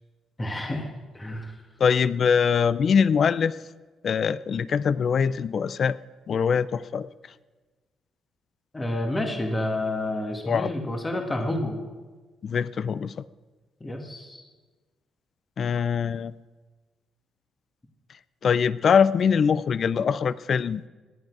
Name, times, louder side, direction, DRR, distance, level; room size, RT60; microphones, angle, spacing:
voice 1, 0.4-0.9 1.1-1.5 8.7-11.8 13.8-14.4, left 1 dB, 20° left, 2 dB, 2.0 m, -29 dB
voice 2, 1.8-3.6 4.0-6.0 6.3-7.1 10.4-10.7 12.4-13.2 15.6-16.3 18.4-20.8, left 6 dB, 55° left, 17 dB, 0.5 m, -23 dB
18.0 x 11.0 x 4.8 m, 1.3 s
cardioid pair, 90°, 0 cm